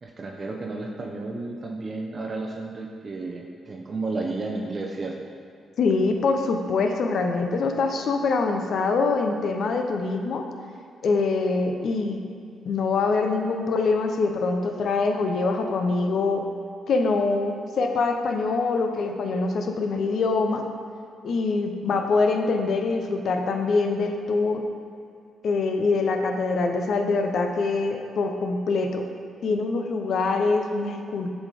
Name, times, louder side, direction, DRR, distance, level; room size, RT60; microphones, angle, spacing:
voice 1, 0.0-5.2, right 3 dB, 40° right, 1 dB, 0.6 m, -32 dB
voice 2, 5.8-10.4 11.0-12.2 12.6-16.4 16.9-20.6 21.2-24.6 25.4-29.0 29.4-31.4, left 3 dB, 65° left, 5 dB, 0.6 m, -24 dB
7.2 x 4.1 x 4.8 m, 2.3 s
hypercardioid pair, 50°, 0 cm